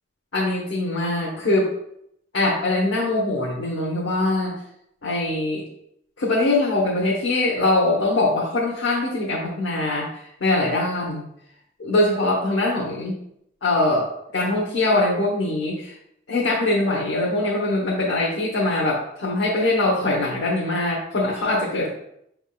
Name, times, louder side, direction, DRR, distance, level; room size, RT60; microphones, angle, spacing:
voice 1, 0.3-1.7 2.3-4.5 5.0-5.6 6.2-11.2 11.8-13.1 13.6-15.9 16.3-21.9, left 2 dB, 75° left, -5 dB, 0.9 m, -22 dB
5.6 x 3.5 x 2.2 m, 0.75 s
head